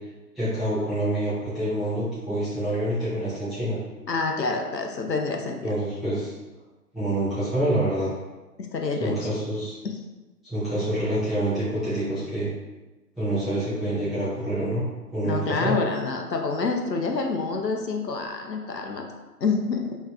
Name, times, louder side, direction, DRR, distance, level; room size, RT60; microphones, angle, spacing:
voice 1, 0.3-3.8 5.6-6.3 6.9-8.1 9.0-9.8 10.4-12.5 13.2-14.8 15.1-15.8, right 1 dB, ahead, -16 dB, 0.9 m, -27 dB
voice 2, 4.1-5.7 8.6-9.2 9.8-9.9 15.2-19.0 19.4-20.0, left 4 dB, 90° left, 2 dB, 0.8 m, -27 dB
5.0 x 3.1 x 2.4 m, 1.1 s
figure-of-eight pair, 130°, 48 cm